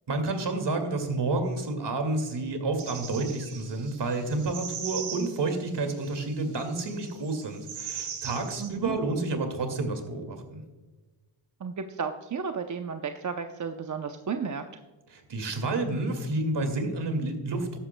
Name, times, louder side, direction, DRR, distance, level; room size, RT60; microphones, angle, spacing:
voice 1, 0.1-10.6 15.1-17.8, right 2 dB, 55° right, 6 dB, 2.3 m, -30 dB
sound 1, 2.8-8.7, right 7 dB, 80° right, 2.3 m, -40 dB
voice 2, 8.6-9.0 11.6-14.8, right 6 dB, 35° right, 6 dB, 0.7 m, -33 dB
14.0 x 11.5 x 2.2 m, 1.2 s
cardioid pair, 75°, 50 cm